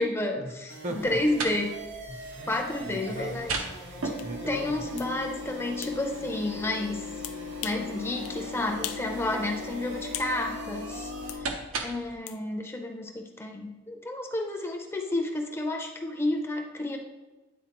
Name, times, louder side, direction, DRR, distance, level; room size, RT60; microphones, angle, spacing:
voice 1, 0.0-1.8 2.5-3.5 4.0-4.1 4.5-7.1 7.6-11.1 11.4-11.6 11.8-17.0, left 2 dB, 10° left, 3 dB, 0.5 m, -31 dB
sound 1, 0.7-11.4, right 2 dB, 60° right, 1.1 m, -44 dB
voice 2, 0.8-1.2 2.1-3.4 3.7-4.8, right 1 dB, 35° right, 4 dB, 0.7 m, -39 dB
sound 2, 1.0-12.2, equal, 75° right, 0.7 m, -38 dB
sound 3, 4.2-4.3 5.0-5.1 5.8-6.0 7.2-7.9 8.2-8.4 8.8-9.1 9.4-10.4 11.3-11.4 12.3-12.4, left 12 dB, 85° left, 0.4 m, -39 dB
9.4 x 3.8 x 2.9 m, 1.2 s
head